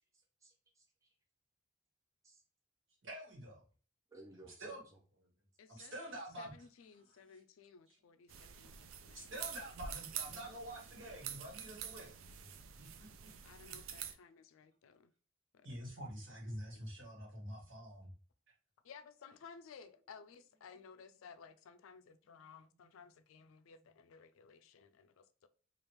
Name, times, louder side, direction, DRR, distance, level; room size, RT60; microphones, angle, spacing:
voice 1, 0.1-1.1 2.2-2.4 4.1-5.0 5.8-5.9, right 2 dB, 15° right, 0.5 m, -59 dB
voice 2, 3.0-3.6 4.6-4.8 5.7-6.5 7.3-7.4 7.9-8.0 9.1-12.5 12.8-13.3 15.6-18.1, right 1 dB, 70° right, 1.4 m, -47 dB
voice 3, 5.6-9.4 13.4-15.1 15.5-15.7 18.8-25.5, left 6 dB, 80° left, 0.4 m, -57 dB
sound 1, 8.3-14.1, right 8 dB, 85° right, 0.4 m, -47 dB
3.3 x 2.4 x 3.0 m
head